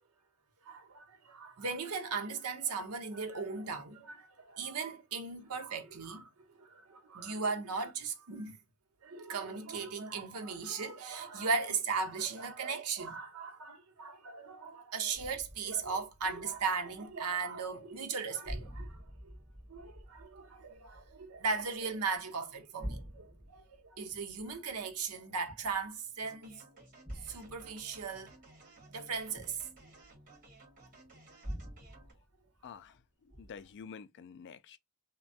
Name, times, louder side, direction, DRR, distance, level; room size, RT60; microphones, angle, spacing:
voice 1, 0.6-6.3 6.6-8.6 9.0-19.3 19.7-26.6 27.3-28.3 28.9-29.6, right 5 dB, 80° right, 0.7 m, -37 dB
sound 1, 15.1-17.4 17.7-18.2 18.5-22.2 22.6-26.2 27.0-30.6 31.4-33.0 33.3-33.8, equal, 10° left, 1.4 m, -48 dB
sound 2, 26.2-32.1, right 2 dB, 40° right, 1.3 m, -58 dB
voice 2, 32.6-34.8, left 6 dB, 50° left, 0.3 m, -49 dB
3.2 x 2.2 x 2.6 m
head